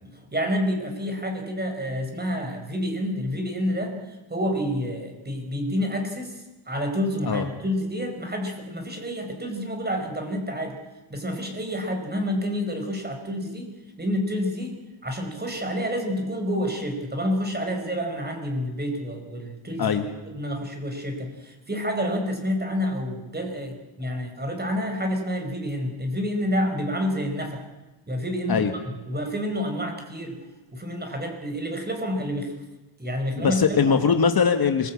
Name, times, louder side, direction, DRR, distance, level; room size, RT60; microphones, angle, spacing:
voice 1, 0.0-4.0 4.3-10.8 11.1-13.7 14.0-14.8 15.0-20.0 20.3-27.7 28.1-28.6 29.1-30.4 30.7-32.5 33.0-34.0, equal, 20° right, 4 dB, 5.0 m, -28 dB
voice 2, 33.4-34.9, left 6 dB, 45° left, 7 dB, 1.8 m, -21 dB
25.5 x 20.5 x 8.5 m, 1.1 s
cardioid pair, 135°, 50 cm